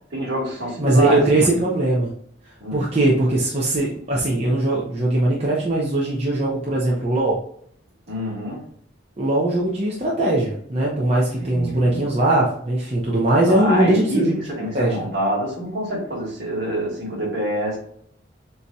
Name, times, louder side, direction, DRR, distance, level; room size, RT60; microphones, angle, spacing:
voice 1, 0.1-1.2 2.6-2.8 8.1-8.6 11.4-12.1 13.4-17.8, right 1 dB, 60° right, -3 dB, 1.9 m, -26 dB
voice 2, 0.8-2.1 2.7-7.4 9.2-14.3 14.7-15.0, right 1 dB, 30° right, -5 dB, 0.8 m, -20 dB
7.0 x 2.9 x 2.3 m, 0.66 s
head